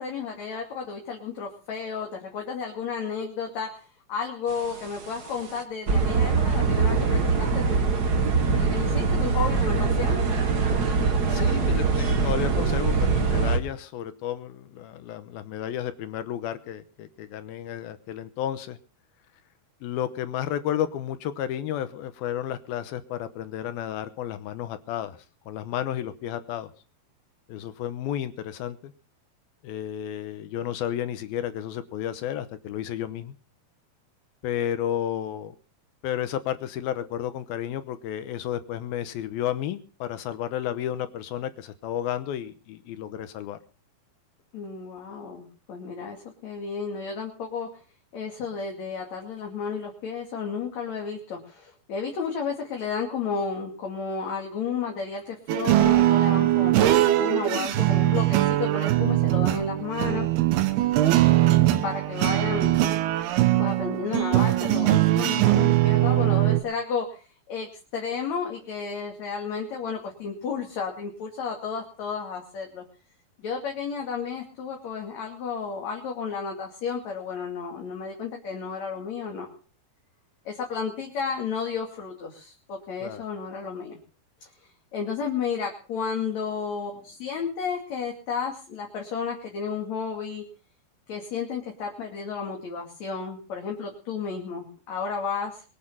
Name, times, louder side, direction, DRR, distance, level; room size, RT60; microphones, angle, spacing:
voice 1, 0.0-3.8 4.1-7.9 8.5-10.2 44.5-46.2 46.4-47.7 48.1-60.3 61.0-61.6 61.8-62.8 63.6-72.8 73.4-79.5 80.5-84.0 84.9-90.4 91.1-95.6, left 5 dB, 50° left, 0 dB, 3.4 m, -32 dB
sound 1, 4.6-5.0 5.4-5.5 5.9-13.6, right 4 dB, 45° right, 1.2 m, -23 dB
voice 2, 11.3-18.8 19.8-25.2 25.5-26.7 27.5-28.9 29.6-33.4 34.4-35.6 36.0-43.6 83.0-83.2, left 11 dB, 80° left, 12 dB, 2.7 m, -32 dB
sound 2, 55.5-66.6, right 14 dB, 80° right, 3.1 m, -21 dB
22.5 x 8.9 x 5.7 m, 0.38 s
omnidirectional pair, 4.5 m